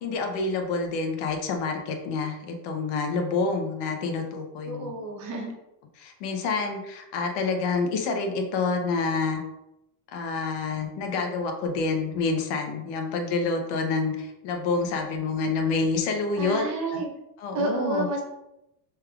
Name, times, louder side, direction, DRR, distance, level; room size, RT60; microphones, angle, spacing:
voice 1, 0.0-4.9 6.0-9.4 10.1-16.6 16.9-17.0 17.4-18.1, left 4 dB, 70° left, 4 dB, 0.8 m, -28 dB
voice 2, 4.6-5.5 16.4-17.1 17.5-18.2, right 2 dB, 40° right, 0 dB, 0.9 m, -30 dB
4.6 x 3.3 x 2.4 m, 0.88 s
cardioid pair, 145°, 43 cm